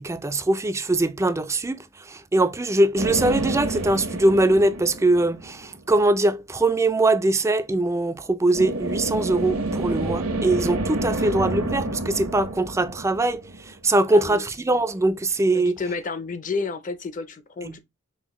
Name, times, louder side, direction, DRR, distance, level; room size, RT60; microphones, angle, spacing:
voice 1, 0.0-15.8 17.7-17.8, right 2 dB, 15° right, 0.4 m, -22 dB
sound 1, 3.0-5.8 8.5-14.0, right 2 dB, 85° right, 1.2 m, -29 dB
voice 2, 14.1-14.4 15.5-17.8, left 4 dB, 40° left, 0.6 m, -31 dB
5.5 x 2.6 x 3.0 m
head